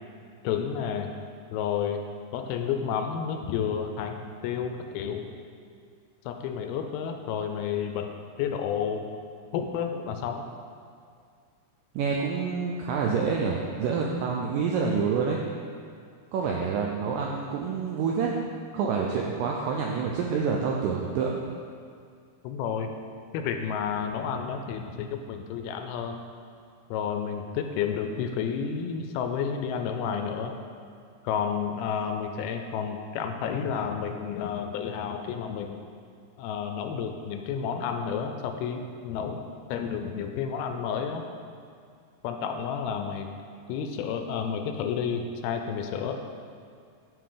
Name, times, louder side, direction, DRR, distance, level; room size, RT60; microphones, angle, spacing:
voice 1, 0.4-1.1 1.5-2.0 2.3-5.3 6.3-8.1 8.4-9.1 9.5-10.5 22.4-22.9 23.3-26.2 26.9-30.6 31.2-35.8 36.4-39.4 39.7-41.2 42.2-43.3 43.7-46.2, left 7 dB, 80° left, 5 dB, 2.4 m, -31 dB
voice 2, 12.0-15.4 16.3-18.3 18.7-21.4, right 5 dB, 85° right, -1 dB, 1.9 m, -27 dB
12.5 x 4.7 x 3.8 m, 2.2 s
omnidirectional pair, 4.5 m